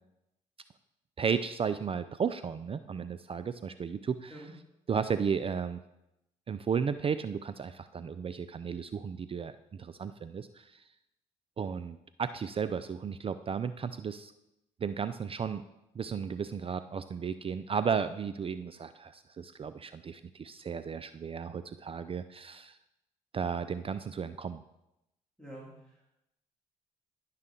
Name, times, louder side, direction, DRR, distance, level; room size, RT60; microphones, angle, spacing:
voice 1, 1.2-4.4 4.9-5.8 6.5-10.8 11.6-14.3 14.8-15.6 15.9-22.8 23.3-24.6, right 6 dB, 35° right, 12 dB, 0.4 m, -34 dB
voice 2, 25.4-26.0, right 1 dB, 5° left, -6 dB, 2.8 m, -47 dB
10.5 x 5.8 x 3.8 m, 0.87 s
hypercardioid pair, 50°, 16 cm